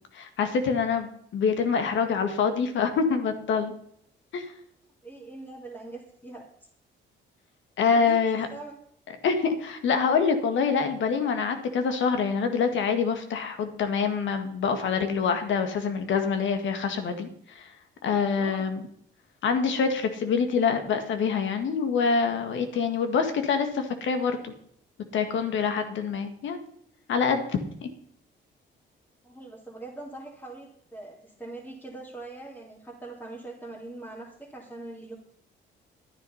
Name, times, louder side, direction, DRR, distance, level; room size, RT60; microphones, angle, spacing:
voice 1, 0.1-3.7 4.3-4.5 7.8-8.5 9.2-17.3 17.5-17.7 18.0-18.8 19.4-24.5 25.1-26.6 27.1-27.9, left 5 dB, 75° left, 7 dB, 1.8 m, -25 dB
voice 2, 5.0-6.4 7.9-8.2 8.5-8.8 18.2-18.7 29.2-35.1, right 2 dB, 10° left, -5 dB, 2.6 m, -42 dB
11.5 x 9.7 x 5.6 m, 0.67 s
cardioid pair, 90°, 20 cm